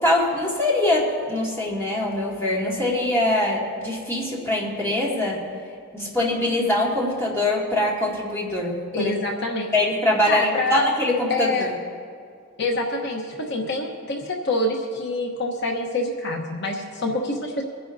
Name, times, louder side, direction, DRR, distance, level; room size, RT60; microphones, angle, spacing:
voice 1, 0.0-5.5 5.9-9.1 9.7-11.7, left 1 dB, 10° left, -5 dB, 2.2 m, -23 dB
voice 2, 8.9-9.7 10.3-10.9 11.3-11.7 12.6-17.6, left 2 dB, 55° left, 1 dB, 1.0 m, -26 dB
24.5 x 10.0 x 2.7 m, 2.3 s
head